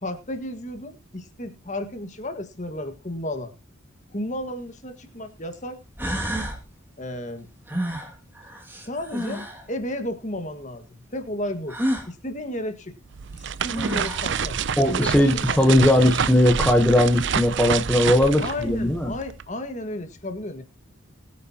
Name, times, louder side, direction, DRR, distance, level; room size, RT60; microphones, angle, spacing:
voice 1, 0.0-3.5 4.1-5.8 7.0-7.5 8.8-9.4 9.7-10.9 11.1-11.8 12.1-12.9 13.3-14.6 14.9-15.6 18.4-20.6, left 1 dB, 35° left, 8 dB, 1.7 m, -33 dB
sound 1, 4.5-4.6 5.5-5.6 6.0-6.6 7.7-9.6 11.7-12.1 13.3-13.4 13.7-14.3, equal, 10° right, 2.3 m, -29 dB
sound 2, 13.1-19.4, right 6 dB, 55° right, 0.5 m, -28 dB
voice 2, 14.8-19.1, left 1 dB, 5° left, 3 dB, 1.1 m, -19 dB
20.5 x 8.8 x 2.9 m, 0.29 s
head